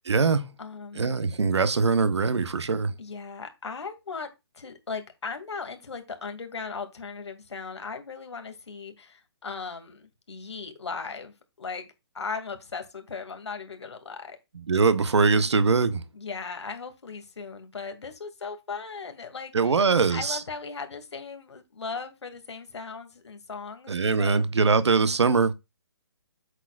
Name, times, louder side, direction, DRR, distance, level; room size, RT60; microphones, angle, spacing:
voice 1, 0.0-0.5 1.0-2.9 14.7-16.0 19.5-20.4 23.9-25.5, right 4 dB, 85° right, 1.1 m, -22 dB
voice 2, 0.6-1.1 3.0-11.9 12.1-14.4 16.1-24.4, left 4 dB, 80° left, 2.3 m, -38 dB
8.0 x 6.4 x 2.4 m
hypercardioid pair, 165°, 14 cm